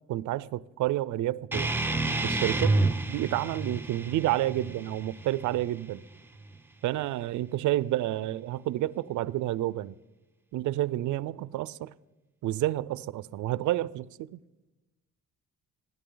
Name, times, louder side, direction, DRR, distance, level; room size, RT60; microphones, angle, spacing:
voice 1, 0.1-1.7 2.2-2.7 3.1-6.0 6.8-10.0 10.5-11.9 12.4-14.4, right 14 dB, 80° right, 0.5 m, -29 dB
sound 1, 1.5-6.6, right 2 dB, 5° right, 0.7 m, -30 dB
28.5 x 11.0 x 3.9 m
cardioid pair, 90°, 30 cm